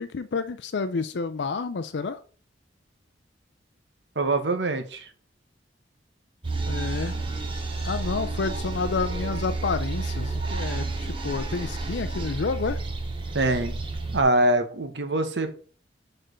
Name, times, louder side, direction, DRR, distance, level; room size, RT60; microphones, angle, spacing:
voice 1, 0.0-2.2 6.7-7.1 7.8-12.8, left 4 dB, 75° left, 10 dB, 0.5 m, -29 dB
voice 2, 4.2-5.1 13.3-13.8 14.1-15.5, right 2 dB, 70° right, 8 dB, 1.0 m, -24 dB
sound 1, 6.4-14.2, right 3 dB, 30° right, 1.1 m, -30 dB
6.7 x 4.4 x 5.0 m, 0.42 s
head